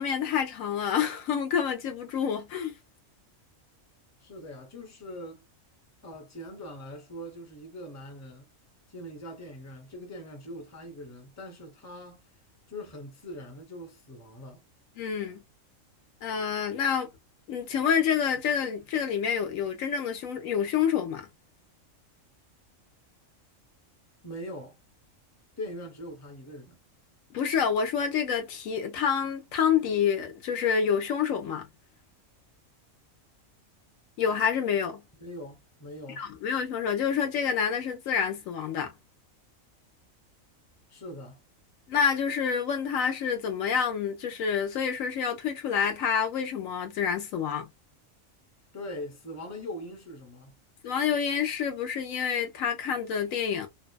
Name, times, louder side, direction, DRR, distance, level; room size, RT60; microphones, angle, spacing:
voice 1, 0.0-2.7 15.0-15.4 16.2-17.1 17.5-21.3 27.3-31.7 34.2-35.1 36.2-38.9 41.9-47.7 50.8-53.7, left 7 dB, 85° left, 1.1 m, -28 dB
voice 2, 4.2-5.4 6.0-8.5 8.9-12.3 12.7-14.6 24.2-24.8 25.6-26.8 35.2-36.3 40.9-41.4 48.7-50.5, left 1 dB, 15° left, 0.6 m, -42 dB
2.6 x 2.3 x 2.2 m
omnidirectional pair, 1.4 m